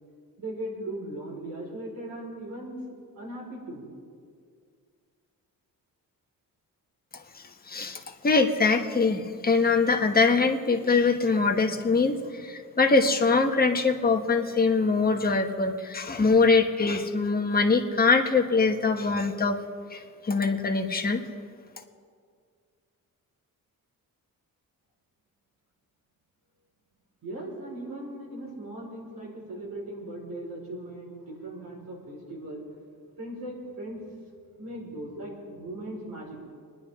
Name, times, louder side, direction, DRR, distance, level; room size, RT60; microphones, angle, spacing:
voice 1, 0.4-2.8 3.2-3.9 27.2-32.6 33.2-34.0 34.6-36.5, right 1 dB, 70° right, -3 dB, 4.5 m, -38 dB
voice 2, 7.7-19.6 19.9-21.2, left 4 dB, 25° left, 3 dB, 1.2 m, -23 dB
26.5 x 10.5 x 3.7 m, 2.1 s
wide cardioid pair, 130°, 35 cm